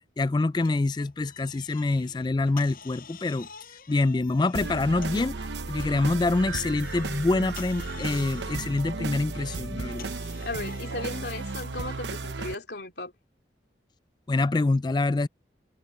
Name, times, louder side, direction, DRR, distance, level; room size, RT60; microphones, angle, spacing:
voice 1, 0.2-3.5 3.9-10.1 14.3-15.3, left 2 dB, 25° left, 0.3 m, -26 dB
sound 1, 0.6-5.3 5.8-11.8, left 6 dB, 50° left, 7.3 m, -49 dB
sound 2, 4.5-12.5, right 3 dB, 80° right, 0.9 m, -34 dB
voice 2, 10.4-13.1, left 2 dB, 70° left, 3.0 m, -36 dB
open air
head